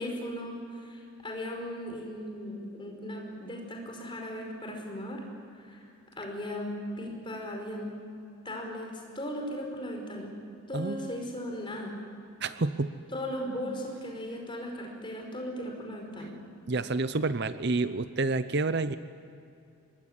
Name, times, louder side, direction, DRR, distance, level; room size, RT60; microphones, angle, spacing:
voice 1, 0.0-5.2 5.5-5.8 6.1-8.0 8.5-10.4 10.7-12.0 13.1-16.4, equal, 20° left, 1 dB, 5.2 m, -37 dB
voice 2, 10.7-11.1 12.4-12.9 16.7-19.0, right 3 dB, 50° right, 12 dB, 0.7 m, -29 dB
24.5 x 21.5 x 9.8 m, 2.6 s
head